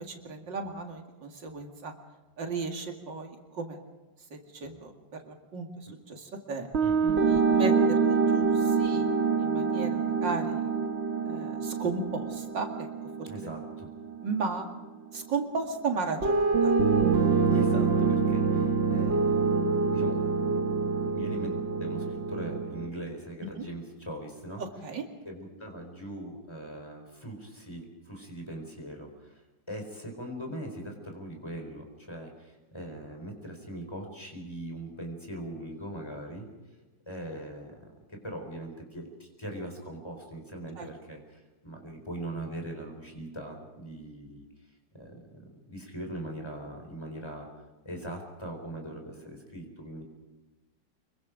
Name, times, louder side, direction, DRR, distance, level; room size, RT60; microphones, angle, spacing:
voice 1, 0.0-1.9 2.4-3.8 4.3-4.9 5.2-6.7 7.3-9.1 9.4-10.7 11.2-12.9 13.2-13.5 14.2-14.7 15.1-16.8 23.6-23.7 24.6-25.0 40.8-40.9, right 4 dB, 85° right, 3 dB, 2.9 m, -35 dB
sound 1, 6.7-14.8 16.2-22.9, right 5 dB, 45° right, 1.1 m, -26 dB
voice 2, 6.8-7.3 13.3-13.9 17.5-20.7 21.1-24.6 25.3-29.4 29.7-36.5 37.1-37.7 38.1-44.4 44.9-47.5 47.8-50.0, right 1 dB, 15° left, 2 dB, 4.2 m, -41 dB
25.0 x 23.0 x 5.1 m, 1.1 s
omnidirectional pair, 1.9 m